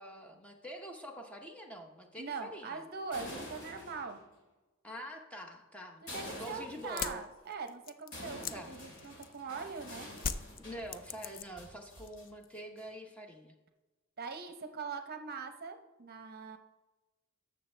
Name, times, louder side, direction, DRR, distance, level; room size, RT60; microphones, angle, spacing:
voice 1, 0.0-2.8 4.8-7.2 8.5-8.7 10.6-13.5, equal, 5° left, 2 dB, 0.8 m, -46 dB
voice 2, 2.2-4.2 6.0-10.1 14.2-16.6, right 5 dB, 50° right, 7 dB, 0.7 m, -42 dB
sound 1, 3.0-4.2 6.1-7.0 8.1-12.2 12.6-13.1, left 1 dB, 60° left, 2.3 m, -47 dB
sound 2, 6.8-9.5 10.2-11.7 12.0-12.6, left 7 dB, 45° left, 0.4 m, -40 dB
14.0 x 6.4 x 3.3 m, 1.1 s
head